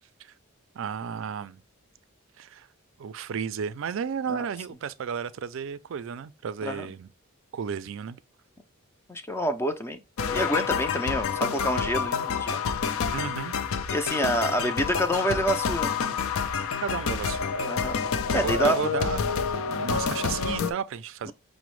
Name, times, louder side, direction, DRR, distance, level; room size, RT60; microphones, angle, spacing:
voice 1, 0.8-1.6 2.4-2.7 3.0-7.1 7.5-8.2 13.0-13.6 16.8-17.7 18.3-19.2 19.8-21.3, right 7 dB, 60° right, 0.4 m, -33 dB
voice 2, 9.1-10.0 10.3-13.1 13.9-15.9 17.7-18.0 18.3-18.8 21.3-21.4, equal, 10° left, 0.4 m, -27 dB
sound 1, 10.2-20.7, left 6 dB, 75° left, 0.5 m, -28 dB
5.9 x 2.1 x 3.0 m
head